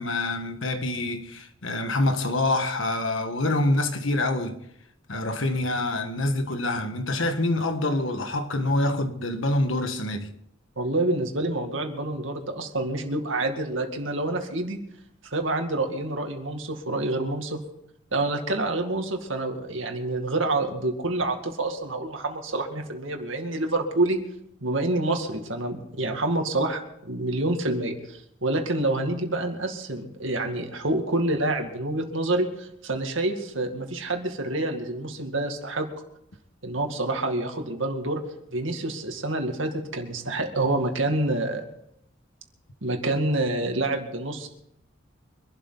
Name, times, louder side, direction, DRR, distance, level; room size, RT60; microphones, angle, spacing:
voice 1, 0.0-4.6 5.1-10.3, left 2 dB, 70° left, 1.6 m, -26 dB
voice 2, 10.8-14.8 15.3-17.6 18.1-24.2 24.6-35.9 36.6-38.2 38.5-41.6 42.8-44.5, right 2 dB, 70° right, 2.2 m, -27 dB
25.0 x 12.0 x 4.1 m
head